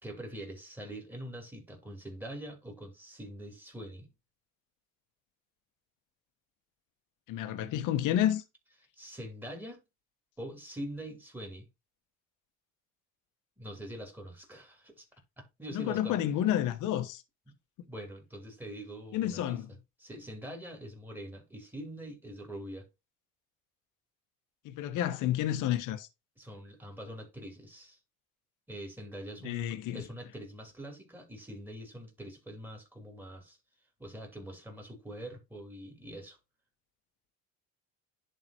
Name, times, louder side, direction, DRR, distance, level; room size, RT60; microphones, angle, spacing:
voice 1, 0.0-4.1 9.0-9.8 10.4-11.7 13.6-15.1 15.4-16.2 17.5-17.6 17.9-19.6 20.0-22.9 26.4-28.0 28.7-33.6 34.0-36.4, right 1 dB, 5° right, 3.2 m, -44 dB
voice 2, 7.3-8.4 15.7-17.2 19.1-19.7 24.6-26.1 29.4-30.0, left 11 dB, 70° left, 1.1 m, -30 dB
11.0 x 3.8 x 2.9 m
supercardioid pair, 85°, 32 cm